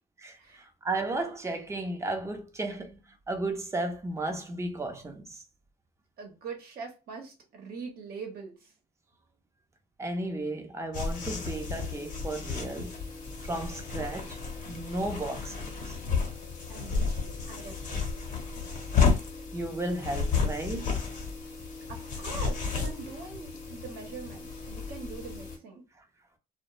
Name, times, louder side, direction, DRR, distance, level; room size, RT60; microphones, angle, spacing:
voice 1, 0.2-3.0 3.3-5.4 10.0-13.0 13.4-14.4 14.7-16.0 19.5-20.9, right 2 dB, 15° right, 0.6 m, -34 dB
voice 2, 6.2-8.7 16.7-17.8 21.9-25.8, right 5 dB, 60° right, 0.9 m, -43 dB
sound 1, 10.9-25.6, left 5 dB, 50° left, 0.9 m, -32 dB
2.3 x 2.1 x 2.9 m
cardioid pair, 110°, 17 cm